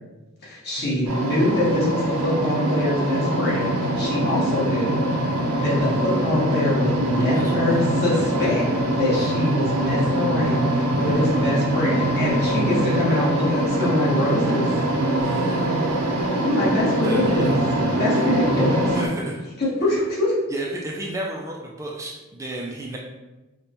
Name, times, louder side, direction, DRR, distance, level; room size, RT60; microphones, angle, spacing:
voice 1, 0.4-5.0 5.5-8.7 8.9-14.6 16.4-17.5 18.0-18.9 19.6-20.3, left 1 dB, 50° left, -7 dB, 1.3 m, -24 dB
sound 1, 1.1-19.1, right 1 dB, 75° right, 0.6 m, -23 dB
voice 2, 7.2-8.3 9.1-9.5 11.0-11.2 15.2-15.7 17.0-17.6 18.9-19.4 20.5-23.0, right 1 dB, 15° right, -1 dB, 0.3 m, -33 dB
5.0 x 2.1 x 2.9 m, 1.1 s
head